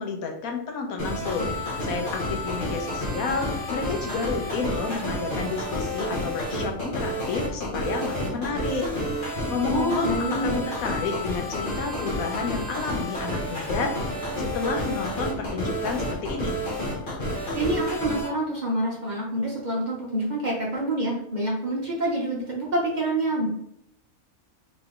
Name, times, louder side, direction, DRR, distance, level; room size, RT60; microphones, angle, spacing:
voice 1, 0.0-1.5 1.8-9.1 9.5-14.1 14.4-16.6, left 4 dB, 85° left, 3 dB, 1.2 m, -30 dB
sound 1, 1.0-18.3, left 1 dB, 40° left, 1.0 m, -30 dB
voice 2, 9.7-10.6 17.5-23.5, right 1 dB, 40° right, -3 dB, 0.8 m, -27 dB
3.2 x 3.0 x 3.6 m, 0.76 s
omnidirectional pair, 1.5 m